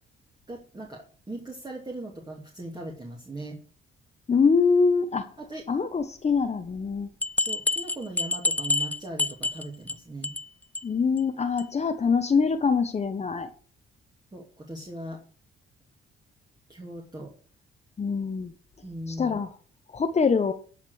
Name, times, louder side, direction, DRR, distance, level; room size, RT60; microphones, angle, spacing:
voice 1, 0.5-3.6 5.4-5.6 7.4-10.3 14.3-15.2 16.7-17.3 18.8-19.4, right 1 dB, 20° right, -1 dB, 2.6 m, -39 dB
voice 2, 4.3-5.2 5.7-7.1 10.8-13.5 18.0-18.5 19.1-19.5 19.9-20.5, left 5 dB, 35° left, 8 dB, 1.0 m, -24 dB
sound 1, 6.8-6.9 7.2-9.9 10.2-10.5 10.7-10.8 11.2-11.3 11.6-11.7, left 2 dB, 10° left, 0.4 m, -27 dB
13.0 x 5.2 x 6.3 m, 0.41 s
cardioid pair, 90°, 20 cm